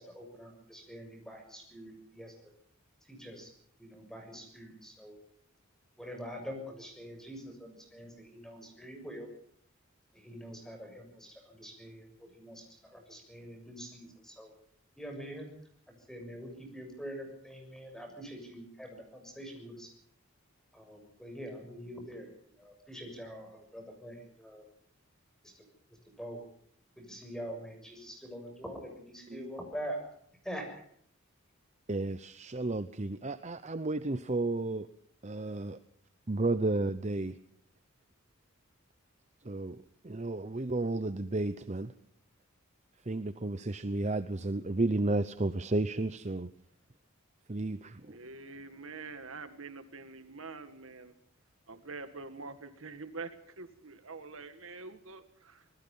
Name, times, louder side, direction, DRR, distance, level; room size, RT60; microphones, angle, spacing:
voice 1, 0.0-2.3 3.1-3.5 3.8-5.2 6.0-9.3 10.1-14.5 15.0-15.5 15.9-19.9 20.7-24.7 25.4-25.6 26.2-26.4 27.0-30.0 30.4-30.8, equal, 5° left, 4 dB, 6.9 m, -45 dB
voice 2, 31.9-34.9 35.2-35.8 36.3-37.3 39.5-39.8 40.0-41.9 43.1-46.5 47.5-48.0, right 2 dB, 35° right, 12 dB, 0.8 m, -32 dB
voice 3, 48.1-51.1 51.7-55.6, right 3 dB, 70° right, 9 dB, 1.9 m, -45 dB
26.0 x 20.0 x 5.5 m, 0.66 s
head